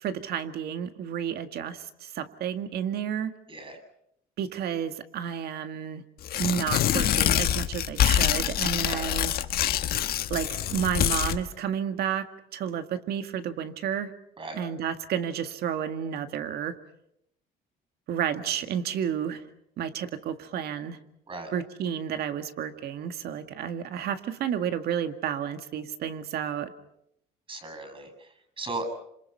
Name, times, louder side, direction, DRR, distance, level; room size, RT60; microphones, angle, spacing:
voice 1, 0.0-3.3 4.4-6.0 6.4-9.3 10.3-12.3 12.5-14.1 14.5-16.8 18.1-19.4 19.8-21.0 21.5-26.7, right 8 dB, 70° right, 8 dB, 2.0 m, -31 dB
Tearing, 6.2-11.4, left 11 dB, 65° left, 1.4 m, -25 dB
voice 2, 27.5-28.9, right 2 dB, 30° right, 10 dB, 7.7 m, -37 dB
27.0 x 27.0 x 5.7 m, 0.77 s
cardioid pair, 110°, 17 cm